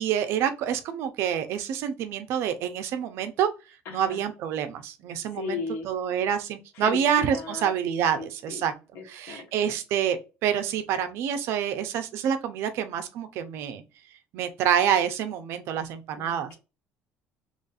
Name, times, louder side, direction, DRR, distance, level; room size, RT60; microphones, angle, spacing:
voice 1, 0.0-3.5 3.9-5.6 5.8-8.7 9.1-13.8 14.3-16.6, right 9 dB, 70° right, 0.6 m, -27 dB
voice 2, 3.8-4.3 5.3-5.9 6.7-7.7 8.2-8.7 8.9-9.8 16.2-16.6, left 5 dB, 80° left, 1.4 m, -36 dB
3.1 x 2.6 x 3.9 m
cardioid pair, 140°, 5 cm